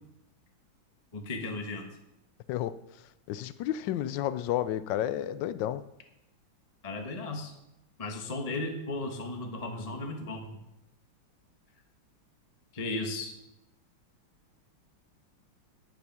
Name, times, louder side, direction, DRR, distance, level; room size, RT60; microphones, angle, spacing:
voice 1, 1.1-1.8 6.8-7.5 8.0-10.5 12.7-13.3, left 2 dB, 20° left, 1.1 m, -35 dB
voice 2, 3.3-5.8, left 12 dB, 70° left, 1.2 m, -31 dB
10.5 x 10.5 x 6.0 m
omnidirectional pair, 2.3 m